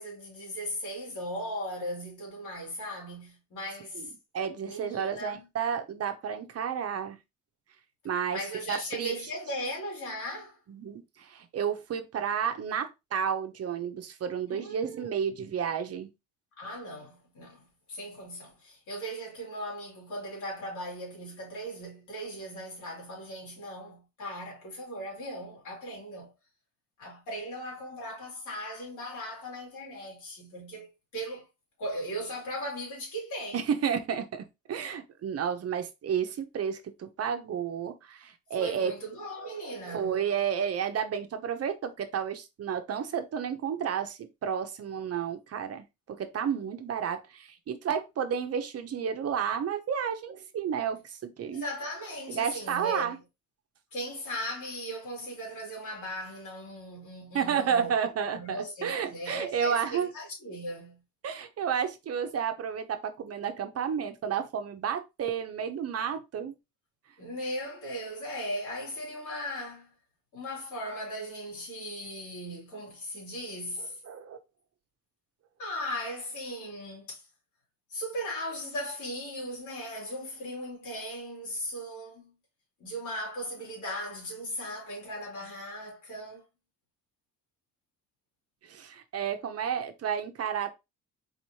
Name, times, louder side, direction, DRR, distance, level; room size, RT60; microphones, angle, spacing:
voice 1, 0.0-4.1 4.7-5.5 8.3-10.6 14.5-15.1 16.6-26.3 27.0-30.9 31.1-31.5 31.8-33.7 38.6-40.2 51.5-53.1 53.9-58.1 58.3-61.0 67.2-69.9 70.3-74.0 75.6-77.2 77.9-82.3 82.8-86.4, equal, 80° left, 2.7 m, -38 dB
voice 2, 4.3-7.2 8.0-8.4 8.7-9.1 10.7-16.1 33.5-38.9 39.4-51.6 52.3-53.2 57.3-60.1 61.2-66.5 74.0-74.4 88.6-90.7, right 7 dB, 55° right, 0.8 m, -31 dB
4.2 x 3.0 x 2.8 m
cardioid pair, 90°, 30 cm